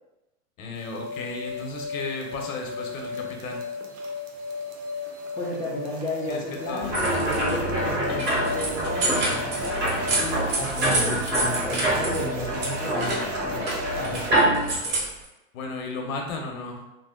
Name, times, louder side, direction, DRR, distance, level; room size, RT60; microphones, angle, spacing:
voice 1, 0.6-3.6 6.3-7.0 15.5-16.8, left 3 dB, 75° left, 1 dB, 0.8 m, -34 dB
sound 1, 0.7-14.3, left 3 dB, 70° right, 0.7 m, -35 dB
voice 2, 5.4-9.8 10.2-15.0, left 1 dB, 10° left, -3 dB, 0.4 m, -33 dB
sound 2, 6.8-14.8, right 1 dB, 25° right, 1.4 m, -26 dB
sound 3, 6.8-7.5 7.9-12.2 12.5-15.3, right 2 dB, 45° right, 1.1 m, -29 dB
2.5 x 2.0 x 3.6 m, 0.98 s
hypercardioid pair, 120°, 41 cm